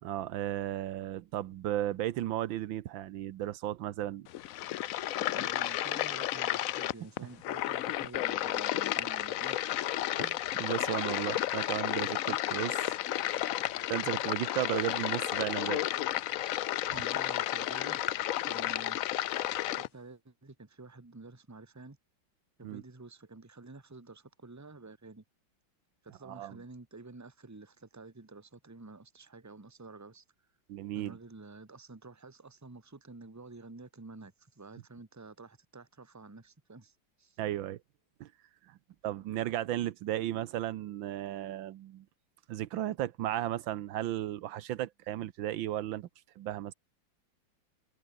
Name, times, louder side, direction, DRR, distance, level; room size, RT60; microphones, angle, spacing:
voice 1, 0.0-4.3 10.2-12.8 13.6-15.8 16.9-17.0 22.6-22.8 26.2-26.6 30.7-31.2 37.4-37.8 38.2-38.3 38.7-38.8 39.0-42.0 42.5-46.1 46.4-46.7, right 13 dB, 85° right, 1.6 m, -35 dB
sound 1, 4.3-19.9, left 13 dB, 75° left, 0.7 m, -32 dB
voice 2, 5.3-9.6 16.9-18.1 18.4-19.0 19.8-22.0 22.6-25.2 26.0-30.2 30.9-37.4, right 3 dB, 10° right, 1.3 m, -50 dB
omnidirectional pair, 2.1 m